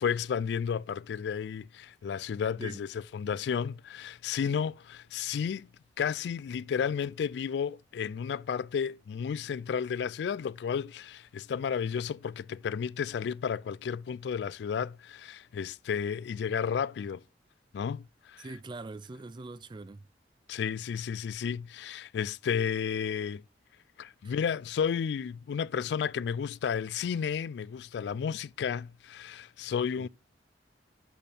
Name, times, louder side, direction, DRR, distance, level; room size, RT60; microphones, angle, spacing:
voice 1, 0.0-5.7 6.0-17.2 17.7-18.5 20.5-23.4 24.0-30.1, left 7 dB, 70° left, 0.3 m, -32 dB
voice 2, 18.4-20.1 24.2-24.3 30.0-30.1, right 3 dB, 25° right, 0.4 m, -43 dB
8.2 x 4.3 x 3.4 m
head